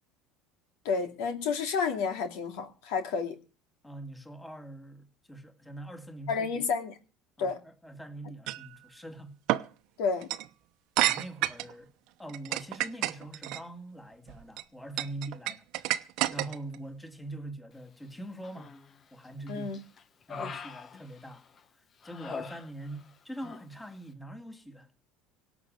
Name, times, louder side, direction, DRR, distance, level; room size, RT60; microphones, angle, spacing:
voice 1, 0.8-3.4 6.3-7.0 7.4-7.6 10.0-10.3 19.5-19.8, left 5 dB, 75° left, 2.6 m, -30 dB
voice 2, 3.8-6.6 7.4-9.4 11.0-11.9 12.2-15.9 16.3-18.7 19.1-19.8 20.3-21.5 22.0-24.9, right 1 dB, 5° left, 2.2 m, -43 dB
sound 1, 8.5-8.7 9.5-9.7 10.2-10.5 11.0-11.7 12.3-13.6 14.3-14.6 15.0-16.8, right 16 dB, 65° right, 0.9 m, -29 dB
Human voice, 18.4-19.0 19.5-21.6 22.0-23.1 23.4-23.7, left 6 dB, 35° left, 1.2 m, -43 dB
18.0 x 6.2 x 9.1 m
supercardioid pair, 95°, 0 cm